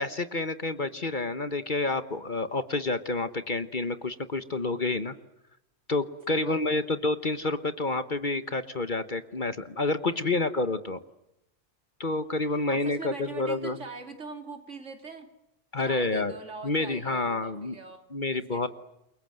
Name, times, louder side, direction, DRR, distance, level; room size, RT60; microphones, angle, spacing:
voice 1, 0.0-5.1 5.9-11.0 12.0-13.8 15.7-16.3 16.6-17.7 18.1-18.7, left 2 dB, 40° left, 11 dB, 1.2 m, -29 dB
voice 2, 6.3-6.9 10.0-10.4 12.5-15.3 15.8-18.7, right 3 dB, 65° right, 5 dB, 3.4 m, -43 dB
29.0 x 23.0 x 7.8 m, 0.86 s
omnidirectional pair, 1.3 m